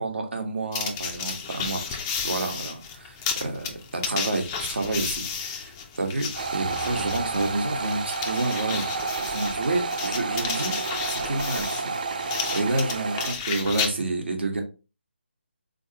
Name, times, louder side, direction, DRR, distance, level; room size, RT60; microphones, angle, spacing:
voice 1, 0.0-2.0 2.2-8.8 9.3-10.8 11.1-11.9 12.5-14.6, right 2 dB, 65° right, 3 dB, 1.1 m, -29 dB
sound 1, 0.7-13.9, left 6 dB, 15° left, 0.3 m, -33 dB
sound 2, 6.3-13.3, right 4 dB, 45° right, 0.4 m, -30 dB
3.7 x 2.9 x 2.8 m, 0.32 s
figure-of-eight pair, 160°, 6 cm